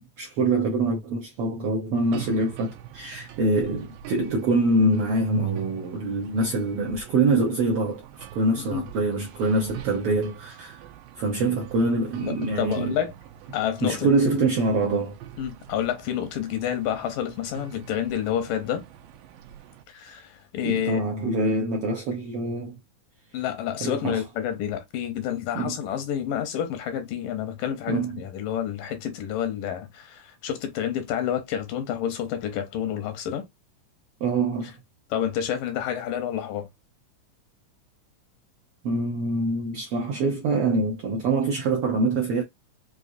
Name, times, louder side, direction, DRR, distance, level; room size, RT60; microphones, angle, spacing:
voice 1, 0.0-10.8 11.2-13.0 13.8-15.2 20.6-22.8 23.8-24.2 25.5-25.8 27.9-28.2 34.2-34.8 38.8-42.4, right 2 dB, 70° right, 1.3 m, -25 dB
sound 1, 1.9-19.8, right 10 dB, 90° right, 2.3 m, -42 dB
voice 2, 12.3-13.1 13.5-14.1 15.4-18.8 19.9-21.0 23.3-33.4 35.1-36.7, left 10 dB, 90° left, 2.7 m, -29 dB
6.2 x 2.7 x 2.6 m
omnidirectional pair, 3.7 m